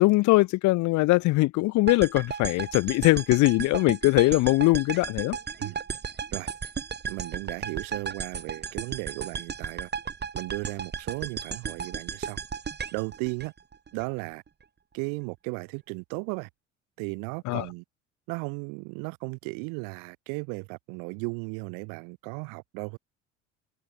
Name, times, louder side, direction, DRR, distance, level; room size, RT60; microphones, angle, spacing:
voice 1, 0.0-5.4 17.5-17.6, left 20 dB, 55° left, 0.7 m, -21 dB
sound 1, 1.9-14.0, right 6 dB, 30° right, 2.5 m, -35 dB
voice 2, 7.0-9.9 10.3-12.4 12.9-13.5 13.9-14.4 14.9-16.5 17.0-17.8 18.3-23.0, right 35 dB, 70° right, 1.4 m, -35 dB
hypercardioid pair, 65°, 34 cm